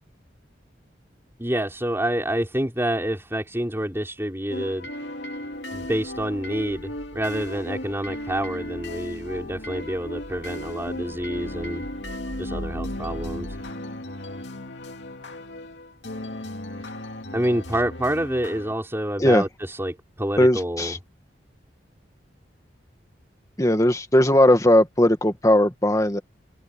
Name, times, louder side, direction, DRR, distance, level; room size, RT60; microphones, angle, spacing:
voice 1, 1.4-4.9 5.7-11.8 12.4-13.5 17.3-19.5 19.8-20.9, right 1 dB, 15° right, 5.0 m, -27 dB
sound 1, 4.5-18.7, left 1 dB, 85° left, 2.4 m, -36 dB
sound 2, 5.5-13.7, equal, 90° right, 5.9 m, -42 dB
voice 2, 20.4-21.0 23.6-26.2, left 1 dB, 20° left, 2.1 m, -18 dB
open air
head